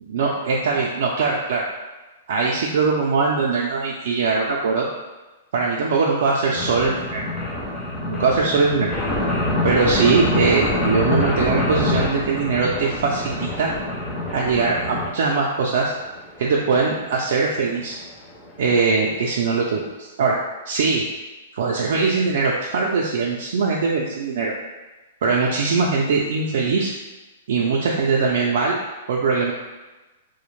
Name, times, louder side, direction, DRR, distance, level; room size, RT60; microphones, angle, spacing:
voice 1, 0.1-1.6 2.3-4.9 5.5-7.3 8.0-8.9 9.6-13.7 14.3-15.9 16.4-18.0 18.6-20.4 20.7-21.0 21.5-24.5 25.2-26.9 27.5-28.8 29.1-29.5, right 4 dB, 70° right, -2 dB, 0.3 m, -21 dB
sound 1, 6.5-15.1 15.7-15.8 16.0-16.1 16.4-16.5 16.8-16.9 17.2-17.3 18.0-18.1 18.4-18.5 18.7-18.8 19.1-19.2 19.5-19.6, left 1 dB, 15° left, 0.4 m, -25 dB
2.4 x 2.1 x 3.0 m, 1.2 s
hypercardioid pair, 155°, 0 cm